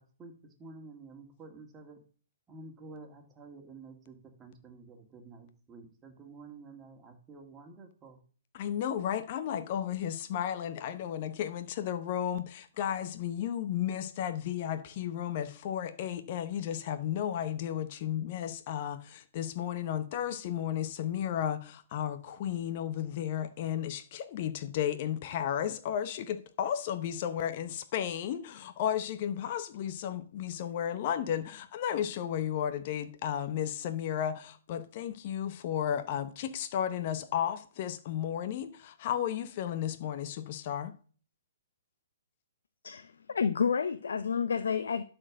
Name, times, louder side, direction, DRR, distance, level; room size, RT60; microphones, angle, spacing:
voice 1, 0.0-2.0 2.5-8.2, right 3 dB, 15° right, 2.1 m, -50 dB
voice 2, 8.5-40.9, left 10 dB, 45° left, 0.8 m, -33 dB
voice 3, 42.8-45.0, left 6 dB, 70° left, 0.6 m, -30 dB
11.5 x 4.5 x 6.3 m
figure-of-eight pair, 125°, 0 cm